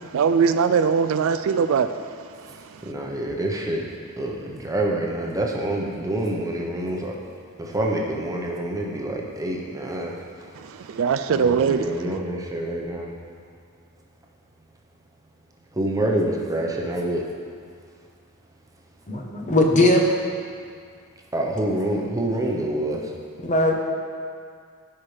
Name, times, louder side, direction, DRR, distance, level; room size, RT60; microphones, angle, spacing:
voice 1, 0.1-2.0 10.6-11.9, right 6 dB, 65° right, 0.3 m, -21 dB
voice 2, 2.3-3.9 4.2-7.2 7.6-10.9 11.3-13.1 15.7-17.3 21.3-23.1, right 1 dB, 15° right, 0.9 m, -27 dB
voice 3, 19.1-20.0 23.4-23.7, left 1 dB, 35° left, 0.9 m, -19 dB
15.0 x 5.7 x 3.3 m
head